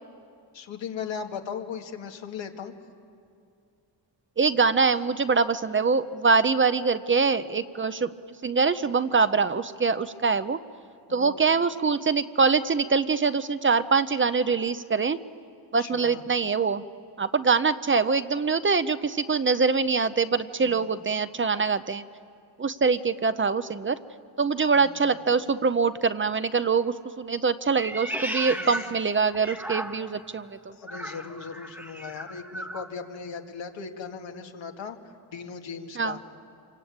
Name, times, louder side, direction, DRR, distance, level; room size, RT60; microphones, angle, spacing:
voice 1, 0.5-2.7 11.1-11.4 15.8-16.2 20.6-21.0 24.8-25.2 28.5-28.8 30.8-36.3, left 6 dB, 90° left, 3 dB, 2.1 m, -38 dB
voice 2, 4.4-8.1 8.4-10.6 11.1-15.2 15.7-16.8 17.2-22.0 22.6-24.0 24.4-30.6 36.0-36.2, right 5 dB, 30° right, 12 dB, 0.6 m, -24 dB
Meow, 27.7-30.3 30.8-32.9, right 1 dB, 5° right, 1.1 m, -36 dB
28.0 x 24.0 x 8.7 m, 2.4 s
wide cardioid pair, 150°, 44 cm